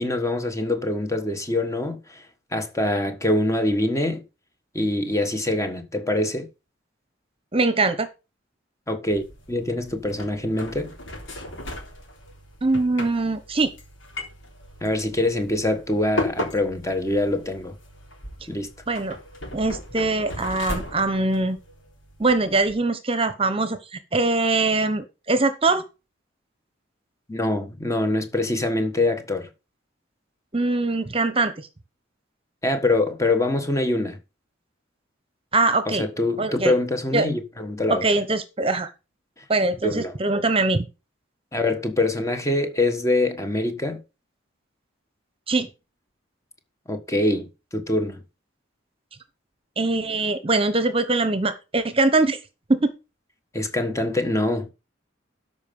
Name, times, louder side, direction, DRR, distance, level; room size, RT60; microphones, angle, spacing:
voice 1, 0.0-2.2 2.5-4.2 4.7-6.5 8.9-9.2 9.5-10.9 14.8-17.7 18.5-18.7 27.3-29.5 32.6-34.2 35.9-38.1 39.8-40.2 41.5-44.0 46.9-48.2 53.5-54.7, left 2 dB, 15° left, 1.4 m, -24 dB
voice 2, 7.5-8.1 12.6-13.7 18.9-19.2 19.5-21.6 22.2-25.8 30.5-31.5 35.5-36.0 36.4-36.8 37.1-37.3 37.9-38.9 39.5-40.8 45.5-45.7 49.8-52.4 52.7-52.9, right 3 dB, 30° right, 1.0 m, -22 dB
sound 1, 9.1-22.7, left 1 dB, 75° left, 3.5 m, -37 dB
13.0 x 5.4 x 5.4 m
head